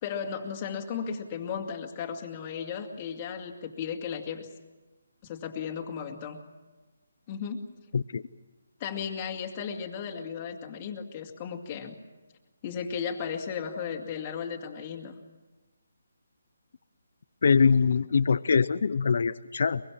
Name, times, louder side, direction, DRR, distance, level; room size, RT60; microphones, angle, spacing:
voice 1, 0.0-4.5 5.2-6.4 7.3-7.6 8.8-11.9 12.6-15.1, left 7 dB, 25° left, 2 dB, 2.3 m, -35 dB
voice 2, 17.4-19.8, left 5 dB, 60° left, 13 dB, 0.7 m, -23 dB
23.5 x 23.0 x 7.5 m, 1.2 s
figure-of-eight pair, 160°, 0 cm